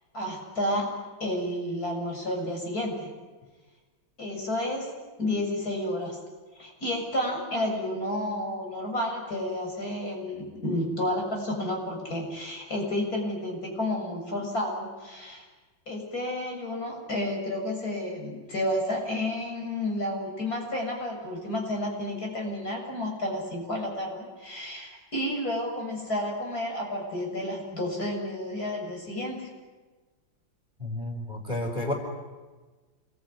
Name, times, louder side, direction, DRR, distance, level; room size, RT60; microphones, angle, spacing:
voice 1, 0.1-0.9 1.2-3.1 4.2-4.9 5.2-6.2 6.6-15.4 15.9-29.5, left 1 dB, 45° left, 0 dB, 7.6 m, -31 dB
voice 2, 30.8-31.9, left 1 dB, 25° right, 2 dB, 4.7 m, -31 dB
28.0 x 22.0 x 9.6 m, 1.3 s
omnidirectional pair, 2.1 m